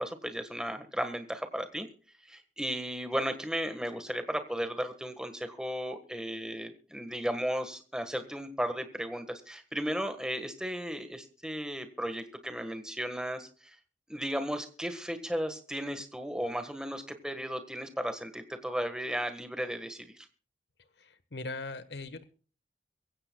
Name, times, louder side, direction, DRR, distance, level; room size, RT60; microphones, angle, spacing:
voice 1, 0.0-1.9 2.2-13.7 14.1-20.3, equal, 5° right, 8 dB, 1.5 m, -35 dB
voice 2, 20.8-22.2, left 3 dB, 75° left, 12 dB, 1.3 m, -40 dB
23.0 x 15.5 x 2.3 m, 0.39 s
head